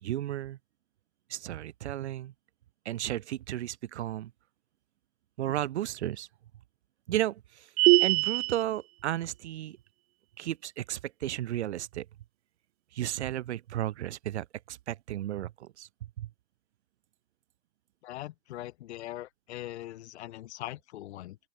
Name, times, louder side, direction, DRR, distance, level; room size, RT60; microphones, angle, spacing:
voice 1, 0.0-0.6 1.3-2.3 2.8-4.3 5.4-6.3 7.1-7.7 8.0-9.8 10.4-12.0 12.9-15.9 16.2-16.3, right 13 dB, 80° right, 3.5 m, -33 dB
sound 1, 7.8-8.6, right 23 dB, 65° right, 0.9 m, -22 dB
voice 2, 18.0-21.4, left 15 dB, 75° left, 3.6 m, -41 dB
open air
hypercardioid pair, 105°, 33 cm